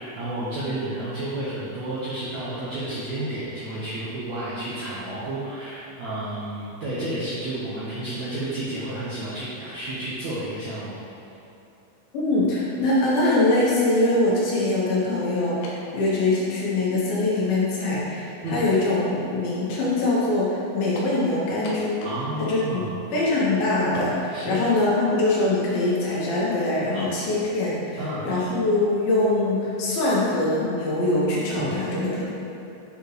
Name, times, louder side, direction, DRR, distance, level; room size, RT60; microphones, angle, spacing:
voice 1, 0.0-11.0 18.4-18.6 22.0-22.9 24.3-24.6 28.0-28.3 31.6-31.8, right 1 dB, 75° right, -10 dB, 1.7 m, -31 dB
voice 2, 12.1-22.0 22.4-22.8 23.1-32.3, left 2 dB, 70° left, -6 dB, 2.8 m, -23 dB
sound 1, 15.6-15.9 16.8-16.9 21.0-21.2 21.6-22.3 22.6-22.7 23.9-24.1, left 2 dB, 90° left, 2.9 m, -39 dB
8.3 x 4.3 x 3.2 m, 2.9 s
omnidirectional pair, 4.5 m